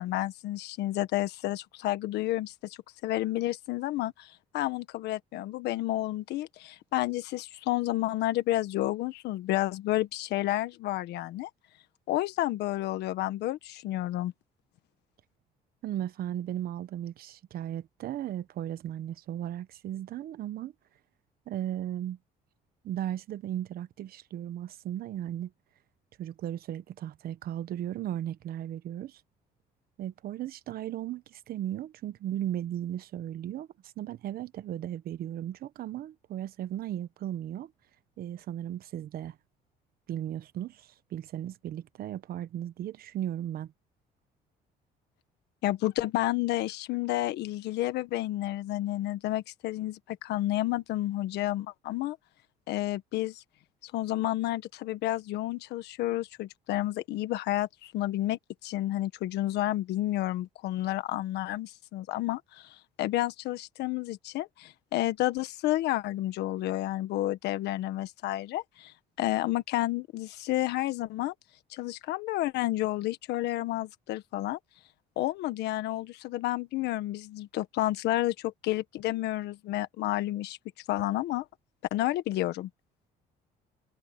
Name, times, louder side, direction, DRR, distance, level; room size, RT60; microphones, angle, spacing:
voice 1, 0.0-11.5 12.1-14.3 45.6-52.2 52.7-53.4 53.8-71.3 71.7-74.6 75.2-80.6 80.9-81.4 81.9-82.7, left 15 dB, 80° left, 1.5 m, -30 dB
voice 2, 15.8-20.7 21.5-22.2 22.8-25.5 26.2-29.2 30.0-37.7 38.2-39.4 40.1-43.7, right 11 dB, 60° right, 1.1 m, -36 dB
cardioid pair, 110°, 17 cm